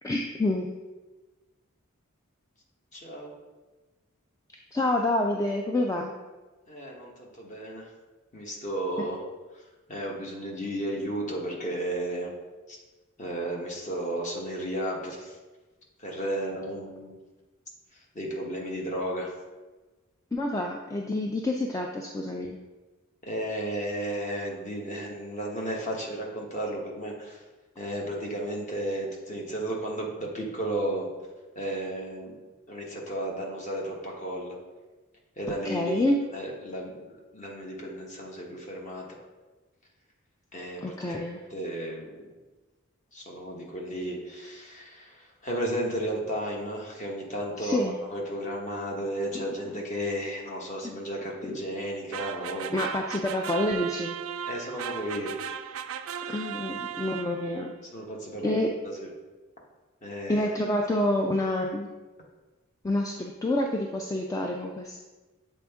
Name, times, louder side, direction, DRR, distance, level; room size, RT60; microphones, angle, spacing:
voice 1, 0.0-0.7 4.7-6.1 20.3-22.6 35.5-36.2 40.8-41.4 47.6-48.0 49.3-49.4 50.8-50.9 52.7-54.2 56.3-57.7 58.4-58.7 60.3-61.9 62.8-65.0, left 1 dB, 15° left, 1 dB, 0.3 m, -28 dB
voice 2, 2.9-3.4 6.7-7.9 8.3-9.2 9.9-12.3 12.7-12.8 13.2-15.3 16.0-17.2 18.1-19.3 23.2-27.4 27.8-31.1 31.5-32.4 32.7-34.5 35.4-39.1 40.5-41.2 41.5-42.3 43.1-47.8 48.1-52.7 54.5-55.3 57.9-59.1 60.0-60.5, right 1 dB, 35° left, -1 dB, 1.1 m, -33 dB
sound 1, 52.1-57.6, right 8 dB, 70° right, 0.3 m, -36 dB
7.3 x 4.3 x 3.5 m, 1.2 s
head